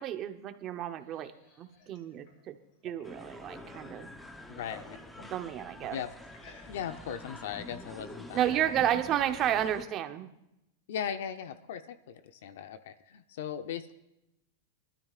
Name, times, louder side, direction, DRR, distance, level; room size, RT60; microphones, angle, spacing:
voice 1, 0.0-1.3 1.6-2.6 2.8-4.1 5.3-6.0 8.3-10.3, right 11 dB, 25° right, 7 dB, 0.9 m, -31 dB
sound 1, 0.6-4.0 4.3-5.4 6.2-7.1, left 3 dB, 50° left, 3.7 m, -57 dB
sound 2, 3.0-9.8, left 1 dB, 5° left, 0.8 m, -47 dB
voice 2, 4.6-5.0 5.9-6.1 6.7-8.7 10.9-13.9, left 8 dB, 65° left, 9 dB, 0.8 m, -38 dB
22.0 x 13.0 x 2.5 m, 0.88 s
supercardioid pair, 170°, 0 cm